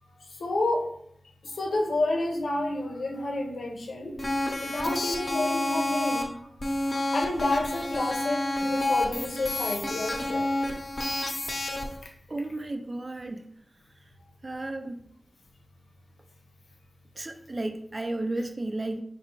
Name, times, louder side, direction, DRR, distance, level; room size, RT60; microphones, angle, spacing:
voice 1, 0.4-0.8 1.4-6.3 6.9-10.5, left 2 dB, 90° left, 1 dB, 0.8 m, -30 dB
sound 1, 4.2-6.2 6.6-12.0, left 1 dB, 35° left, 0.8 m, -29 dB
voice 2, 12.3-13.4 14.4-15.0 17.2-19.0, right 2 dB, 35° right, 6 dB, 0.4 m, -33 dB
4.7 x 2.3 x 4.4 m, 0.70 s
wide cardioid pair, 80°, 0 cm